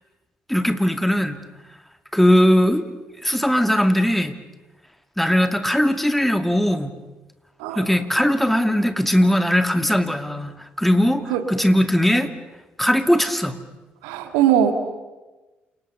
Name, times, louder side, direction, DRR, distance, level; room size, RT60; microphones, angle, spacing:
voice 1, 0.5-1.4 2.1-2.8 3.2-4.3 5.2-6.9 7.8-10.5 10.8-12.3 12.8-13.6, equal, 5° left, 9 dB, 2.4 m, -19 dB
voice 2, 14.0-14.7, right 10 dB, 70° right, 8 dB, 1.8 m, -20 dB
28.5 x 27.0 x 6.9 m, 1.1 s
figure-of-eight pair, 45°, 5 cm